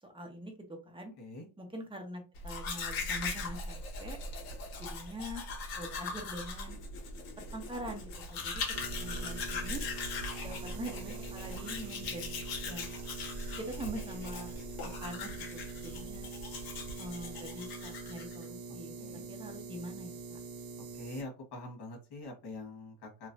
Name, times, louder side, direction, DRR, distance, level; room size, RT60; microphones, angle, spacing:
voice 1, 0.0-1.1 1.6-4.2 4.8-5.4 5.7-6.8 7.5-8.6 9.0-9.8 10.4-12.9 13.6-16.3 17.0-20.4, right 1 dB, 15° right, 3 dB, 1.0 m, -44 dB
voice 2, 1.2-1.5 19.0-19.2 20.9-23.3, left 2 dB, 75° left, 1 dB, 1.5 m, -44 dB
Domestic sounds home sounds, 2.4-18.4, left 3 dB, 60° left, 1.3 m, -40 dB
sound 1, 8.7-21.2, right 4 dB, 60° right, 0.7 m, -45 dB
3.1 x 2.9 x 2.6 m, 0.32 s
cardioid pair, 95°, 40 cm